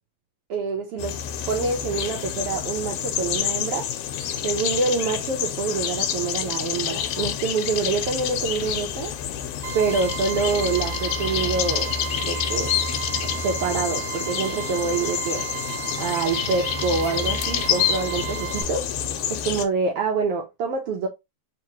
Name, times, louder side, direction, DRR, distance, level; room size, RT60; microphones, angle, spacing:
voice 1, 0.5-1.2 1.5-3.9 4.4-9.2 9.7-11.9 12.2-12.7 13.4-15.4 16.0-18.9 19.3-21.1, right 4 dB, 75° right, 1.4 m, -26 dB
sound 1, 1.0-19.6, left 9 dB, 90° left, 2.1 m, -28 dB
sound 2, 9.6-18.6, right 11 dB, 45° right, 1.9 m, -34 dB
4.4 x 2.9 x 2.8 m
omnidirectional pair, 3.3 m